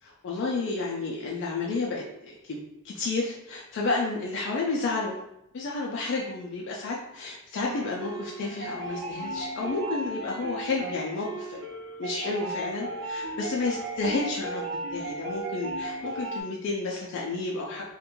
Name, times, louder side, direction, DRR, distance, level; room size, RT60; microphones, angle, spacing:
voice 1, 0.0-5.1 5.5-11.6 12.0-17.8, left 3 dB, 55° left, -2 dB, 0.3 m, -31 dB
sound 1, 7.6-16.4, right 1 dB, 60° right, 0.6 m, -35 dB
2.5 x 2.2 x 2.9 m, 0.84 s
head